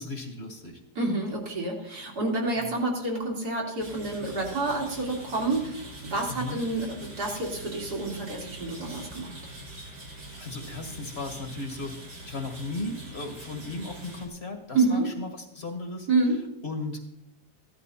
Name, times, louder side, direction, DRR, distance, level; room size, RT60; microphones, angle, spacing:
voice 1, 0.0-0.8 2.6-2.7 6.3-6.6 10.4-11.9 12.2-16.1 16.6-17.1, left 2 dB, 40° left, 4 dB, 2.1 m, -36 dB
voice 2, 1.0-9.4 14.7-15.1 16.1-16.4, right 2 dB, 70° right, -2 dB, 3.5 m, -28 dB
sound 1, 3.8-14.3, right 1 dB, 90° right, 3.7 m, -43 dB
15.5 x 12.0 x 4.2 m, 0.82 s
omnidirectional pair, 1.7 m